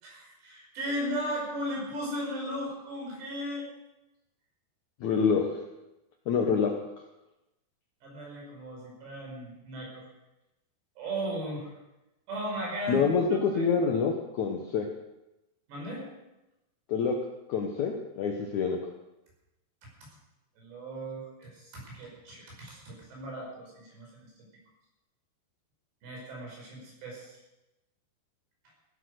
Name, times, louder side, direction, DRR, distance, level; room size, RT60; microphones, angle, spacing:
voice 1, 0.0-3.7 8.0-10.0 11.0-11.7 12.3-13.7 15.7-16.1 20.6-24.3 26.0-27.4, equal, 80° right, -2 dB, 7.5 m, -36 dB
voice 2, 5.0-5.5 6.3-6.7 12.9-14.9 16.9-17.2 17.5-18.8, left 5 dB, 70° left, 2 dB, 1.8 m, -26 dB
16.0 x 12.0 x 6.5 m, 0.96 s
omnidirectional pair, 4.9 m